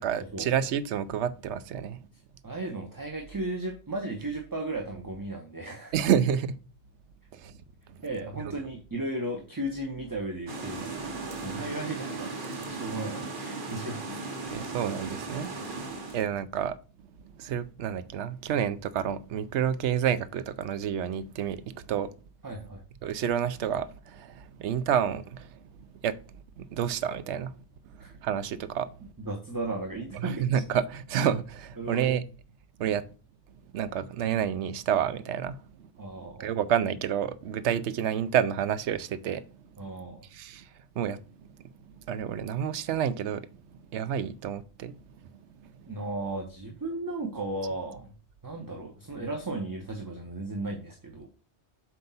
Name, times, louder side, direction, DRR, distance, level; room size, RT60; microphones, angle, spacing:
voice 1, 0.0-2.0 5.9-6.6 7.3-7.5 14.5-15.5 16.1-16.8 17.4-22.1 23.0-25.6 26.0-26.2 26.6-27.5 28.2-28.9 30.2-32.2 32.8-33.1 33.7-35.6 36.4-39.4 40.3-40.7 41.0-41.2 42.1-43.5 43.9-45.0 45.6-45.7, right 9 dB, 80° right, 0.9 m, -29 dB
voice 2, 2.4-5.9 8.0-12.4 12.7-14.6 15.8-16.0 22.4-22.8 28.0-28.1 29.2-30.4 31.8-32.1 36.0-36.5 39.8-40.3 45.9-48.1 48.4-51.3, right 2 dB, 20° right, 0.8 m, -35 dB
sound 1, 10.5-16.3, right 3 dB, 50° right, 1.3 m, -37 dB
7.7 x 2.9 x 5.5 m
omnidirectional pair, 1.2 m